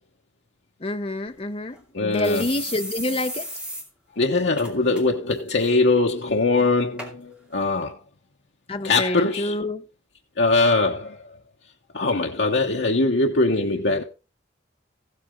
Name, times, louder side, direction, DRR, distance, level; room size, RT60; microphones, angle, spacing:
voice 1, 0.8-3.5 8.7-9.8, left 1 dB, 30° left, 0.7 m, -27 dB
sound 1, 1.3-1.4 1.7-1.8 2.2-3.9 4.2-4.3 4.6-5.0 5.4-5.7 6.4-6.5 7.0-7.1 7.8-7.9, equal, 5° right, 2.6 m, -34 dB
voice 2, 1.9-2.5 4.2-8.0 8.8-9.6 10.4-11.2 11.9-14.0, left 3 dB, 70° left, 1.1 m, -21 dB
15.0 x 8.2 x 3.7 m
head